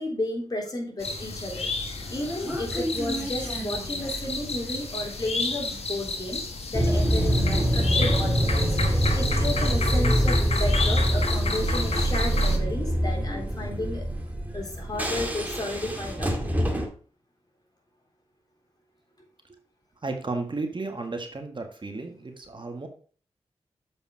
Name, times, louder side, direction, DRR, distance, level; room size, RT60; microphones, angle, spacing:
voice 1, 0.0-6.4 6.7-8.7 9.1-14.0 14.5-16.3, left 1 dB, 35° left, 0 dB, 3.7 m, -33 dB
sound 1, 1.0-12.6, left 3 dB, 65° left, 1.5 m, -31 dB
Human voice, 1.9-4.9, equal, 15° left, 4.7 m, -35 dB
sound 2, 6.7-16.9, equal, 15° right, 2.1 m, -24 dB
voice 2, 20.0-22.9, right 3 dB, 45° right, 4 dB, 1.7 m, -33 dB
7.4 x 5.3 x 4.8 m, 0.41 s
cardioid pair, 45°, 11 cm